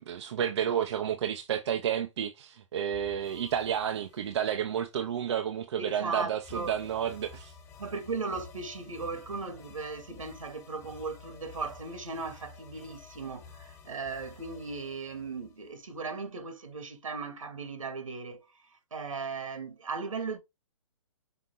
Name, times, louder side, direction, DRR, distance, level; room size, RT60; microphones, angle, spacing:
voice 1, 0.1-7.5, right 9 dB, 60° right, 0.9 m, -31 dB
sound 1, 2.9-4.8 6.4-16.1, left 5 dB, 20° left, 1.6 m, -52 dB
voice 2, 5.8-6.8 7.8-20.4, right 4 dB, 85° right, 2.4 m, -37 dB
5.9 x 4.3 x 3.8 m
hypercardioid pair, 140°, 16 cm